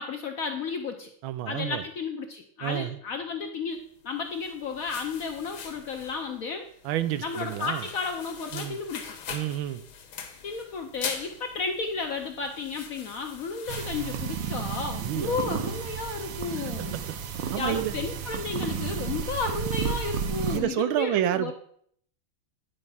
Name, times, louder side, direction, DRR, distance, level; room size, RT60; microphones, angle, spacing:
voice 1, 0.0-1.1 1.5-6.7 7.2-9.2 10.4-17.0 17.6-21.5, left 4 dB, 65° left, 4 dB, 0.9 m, -33 dB
voice 2, 1.2-1.8 2.6-3.0 6.8-7.8 8.5-8.8 9.3-9.8 15.0-15.4 16.7-17.0 17.5-17.9 20.5-21.5, right 13 dB, 90° right, 12 dB, 1.4 m, -29 dB
sound 1, 4.2-14.9, left 6 dB, 85° left, 1.8 m, -42 dB
sound 2, 13.7-20.6, right 7 dB, 70° right, 1.5 m, -32 dB
9.8 x 4.6 x 5.5 m, 0.63 s
omnidirectional pair, 2.2 m